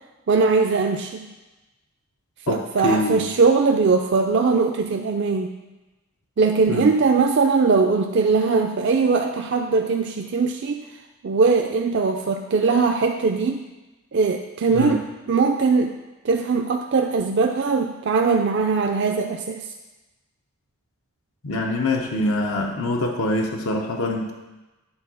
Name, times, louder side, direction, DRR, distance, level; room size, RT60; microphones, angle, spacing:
voice 1, 0.3-1.2 2.5-5.6 6.4-10.8 11.2-13.6 14.1-15.0 15.3-15.9 16.2-19.7, right 4 dB, 55° right, 3 dB, 0.4 m, -20 dB
voice 2, 2.5-3.2 6.7-6.9 14.7-15.0 21.4-24.3, left 2 dB, 80° left, 1 dB, 0.8 m, -24 dB
9.7 x 3.7 x 6.2 m, 1.1 s
head